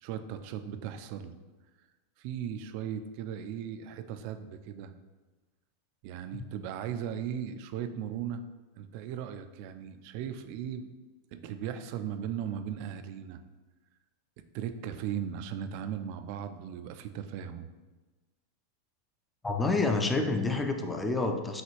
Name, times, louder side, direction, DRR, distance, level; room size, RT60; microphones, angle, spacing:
voice 1, 0.0-1.3 2.2-4.9 6.0-8.4 8.8-10.9 11.3-13.4 14.5-17.7, right 9 dB, 50° right, 9 dB, 0.4 m, -37 dB
voice 2, 19.4-21.6, left 3 dB, 10° left, 4 dB, 0.5 m, -28 dB
6.3 x 2.4 x 3.0 m, 1.2 s
figure-of-eight pair, 90°, 0 cm